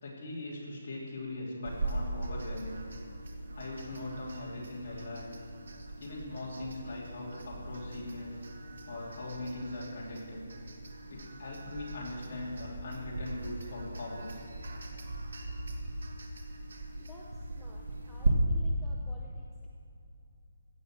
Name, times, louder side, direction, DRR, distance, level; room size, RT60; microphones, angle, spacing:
voice 1, 0.0-2.7 3.5-5.3 6.0-8.4 8.9-10.4 11.1-14.4, left 2 dB, 30° left, -6 dB, 3.2 m, -40 dB
sound 1, 1.6-18.3, right 2 dB, 60° right, 1.5 m, -39 dB
voice 2, 17.0-19.7, left 2 dB, ahead, -6 dB, 0.5 m, -55 dB
16.0 x 5.6 x 7.7 m, 2.7 s
hypercardioid pair, 180°, 0 cm